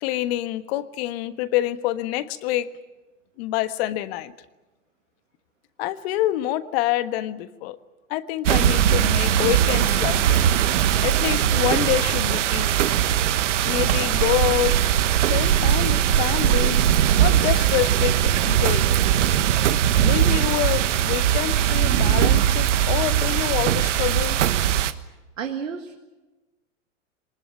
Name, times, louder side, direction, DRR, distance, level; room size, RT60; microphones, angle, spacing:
voice 1, 0.0-2.7 3.4-4.3 5.8-7.8 8.1-10.4 11.0-12.9 13.6-14.7 15.3-16.8 17.2-18.9 20.0-24.4, left 14 dB, 55° left, 11 dB, 1.5 m, -26 dB
sound 1, 8.4-24.9, right 10 dB, 75° right, 1.4 m, -20 dB
sound 2, 9.9-10.0 10.5-10.9 11.4-12.4 12.9-13.1 13.7-14.1 14.3-14.4 14.7-15.2 15.6-16.1 16.5-16.9 17.3-18.1, right 9 dB, 60° right, 7.3 m, -38 dB
voice 2, 25.4-26.0, right 7 dB, 90° right, 4 dB, 2.0 m, -31 dB
23.5 x 20.0 x 9.4 m, 1.1 s
hypercardioid pair, 110°, 37 cm